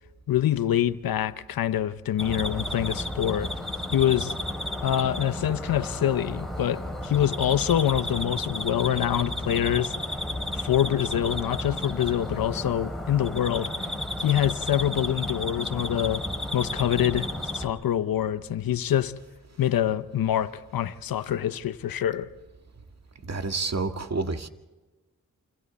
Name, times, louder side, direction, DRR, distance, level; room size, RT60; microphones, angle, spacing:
voice 1, 0.3-3.5 3.9-4.4 4.8-9.9 10.5-13.7 14.2-16.3 16.5-19.1 19.6-22.3, left 11 dB, 90° left, 0.8 m, -25 dB
sound 1, 2.2-17.7, left 1 dB, ahead, 6.3 m, -32 dB
voice 2, 23.3-24.5, right 3 dB, 50° right, 1.9 m, -29 dB
29.0 x 25.0 x 4.2 m
cardioid pair, 40°, 34 cm